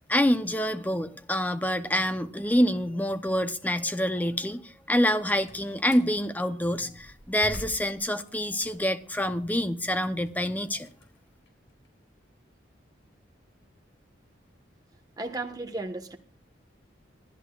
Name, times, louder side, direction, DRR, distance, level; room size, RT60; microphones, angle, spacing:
voice 1, 0.1-10.9, equal, 10° left, 0.6 m, -26 dB
Slam, 5.2-6.1 6.7-9.1 9.5-11.9, equal, 85° left, 3.8 m, -45 dB
voice 2, 15.2-16.2, right 2 dB, 20° right, 1.2 m, -34 dB
26.5 x 11.5 x 2.4 m
head